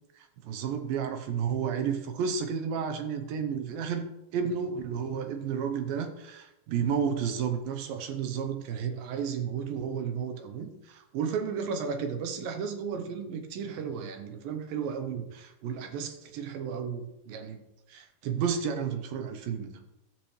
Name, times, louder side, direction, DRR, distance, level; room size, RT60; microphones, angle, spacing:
voice 1, 0.2-17.6 17.9-19.8, right 7 dB, 70° right, 6 dB, 2.4 m, -32 dB
15.5 x 6.0 x 3.3 m, 0.89 s
omnidirectional pair, 4.8 m